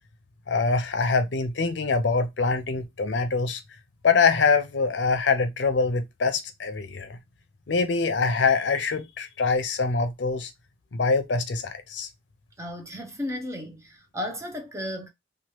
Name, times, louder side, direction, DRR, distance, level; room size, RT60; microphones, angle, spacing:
voice 1, 0.5-3.6 4.0-7.2 7.7-10.5 10.9-12.1, left 4 dB, 90° left, 0.6 m, -24 dB
voice 2, 12.6-15.1, left 1 dB, 15° right, 0.7 m, -34 dB
2.9 x 2.3 x 3.0 m
head